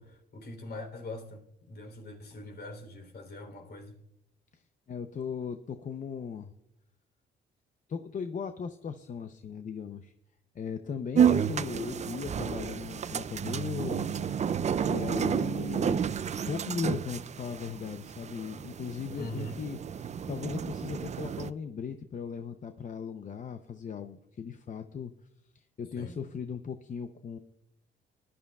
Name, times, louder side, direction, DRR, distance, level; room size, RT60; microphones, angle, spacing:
voice 1, 0.0-4.0 19.1-19.6 26.0-26.2, left 1 dB, 55° left, 3.4 m, -42 dB
voice 2, 4.9-6.5 7.9-10.1 10.5-14.1 14.8-19.8 20.3-25.1 25.5-27.4, left 6 dB, 40° left, 0.7 m, -37 dB
sound 1, 11.1-21.5, right 8 dB, 35° right, 0.4 m, -31 dB
20.0 x 11.5 x 2.4 m
cardioid pair, 90°, 20 cm